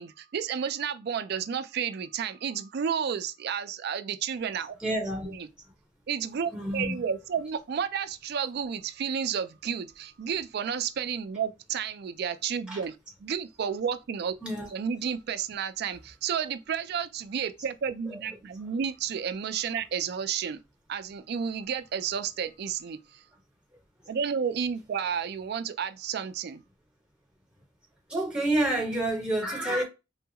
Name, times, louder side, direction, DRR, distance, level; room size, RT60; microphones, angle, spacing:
voice 1, 0.0-4.7 5.4-5.5 6.1-13.0 13.2-14.3 14.7-20.6 20.9-23.2 24.1-26.6, right 7 dB, 55° right, 0.4 m, -31 dB
voice 2, 4.8-5.4 6.4-7.4 12.7-12.8 14.4-14.7 18.0-18.7 19.7-19.8 28.1-29.8, right 1 dB, 5° right, 1.2 m, -30 dB
3.4 x 2.3 x 2.8 m
head